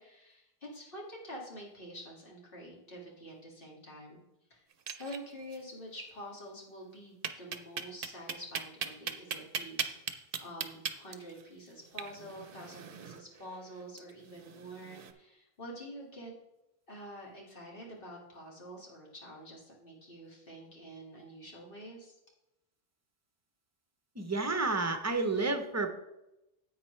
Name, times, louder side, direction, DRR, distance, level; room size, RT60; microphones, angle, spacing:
voice 1, 0.0-4.2 4.5-4.6 5.0-9.9 10.4-16.3 16.9-22.2, equal, 60° left, -2 dB, 2.3 m, -47 dB
sound 1, 4.7-5.6 5.9-6.0 6.3-6.4 7.2-15.1, right 7 dB, 60° right, 0.8 m, -39 dB
voice 2, 24.2-25.9, right 3 dB, 15° right, 6 dB, 0.7 m, -30 dB
9.9 x 8.2 x 3.2 m, 0.90 s
omnidirectional pair, 1.1 m